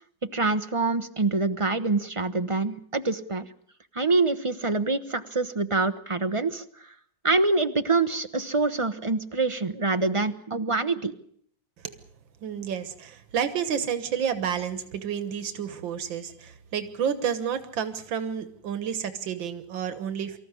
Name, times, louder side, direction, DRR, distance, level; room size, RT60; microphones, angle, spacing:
voice 1, 0.3-3.5 3.9-6.9 7.2-11.1, right 3 dB, 25° right, 10 dB, 0.8 m, -25 dB
voice 2, 12.4-20.4, right 8 dB, 90° right, 12 dB, 2.0 m, -30 dB
25.0 x 14.5 x 9.8 m, 0.64 s
omnidirectional pair, 2.0 m